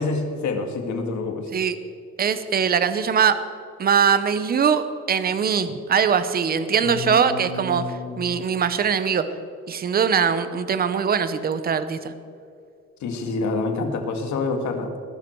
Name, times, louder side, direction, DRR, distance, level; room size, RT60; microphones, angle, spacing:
voice 1, 0.0-1.5 6.8-8.4 13.0-14.9, left 3 dB, 75° left, 5 dB, 2.1 m, -27 dB
voice 2, 2.2-3.4 3.8-9.2 9.7-12.1, right 7 dB, 30° right, 12 dB, 0.8 m, -22 dB
20.5 x 11.5 x 4.6 m, 2.5 s
cardioid pair, 175°, 29 cm